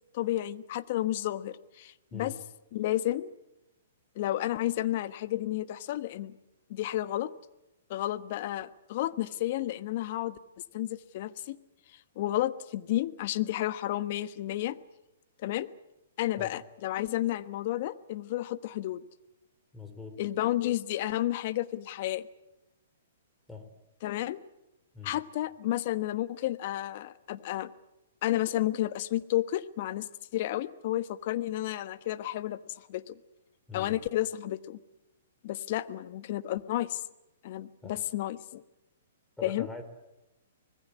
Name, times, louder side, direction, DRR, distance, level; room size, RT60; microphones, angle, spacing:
voice 1, 0.1-2.3 2.7-3.3 4.1-6.3 6.7-7.3 7.9-10.4 10.7-11.6 12.2-14.8 15.4-15.7 16.2-19.0 20.2-22.3 24.0-24.4 25.0-27.7 28.2-30.1 30.3-32.6 32.9-33.2 33.7-34.8 35.4-37.0 37.4-38.6 39.4-39.7, left 14 dB, 50° left, 14 dB, 1.2 m, -31 dB
voice 2, 2.1-2.5 16.4-16.6 19.7-20.2 23.5-23.7 24.9-25.2 33.7-34.0 37.8-38.0 39.4-39.8, left 4 dB, 5° left, 6 dB, 3.8 m, -43 dB
25.5 x 20.5 x 8.4 m, 0.92 s
hypercardioid pair, 125°, 0 cm